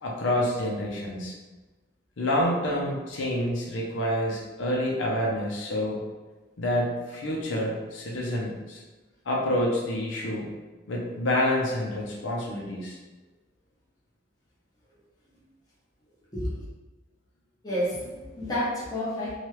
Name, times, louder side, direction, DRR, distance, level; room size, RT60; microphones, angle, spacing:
voice 1, 0.0-1.3 2.2-6.0 6.6-8.8 9.3-10.5 10.9-13.0, left 1 dB, 75° left, -3 dB, 0.6 m, -28 dB
voice 2, 16.3-16.6 17.6-19.4, left 1 dB, 20° left, -9 dB, 0.9 m, -30 dB
2.9 x 2.3 x 3.1 m, 1.2 s
head